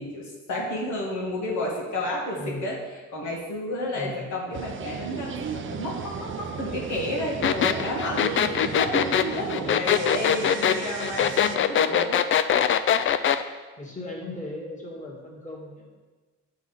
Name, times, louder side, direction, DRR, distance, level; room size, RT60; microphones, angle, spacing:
voice 1, 0.0-2.8 3.1-12.3, left 1 dB, 80° left, -3 dB, 1.7 m, -31 dB
voice 2, 2.4-2.7 3.9-4.4 9.6-9.9 13.8-16.0, left 2 dB, 25° left, -4 dB, 1.8 m, -37 dB
sound 1, 4.5-11.6, right 6 dB, 40° right, 0.6 m, -35 dB
sound 2, 7.4-13.4, left 9 dB, 45° left, 0.4 m, -22 dB
7.3 x 3.8 x 5.6 m, 1.3 s
cardioid pair, 90°, 30 cm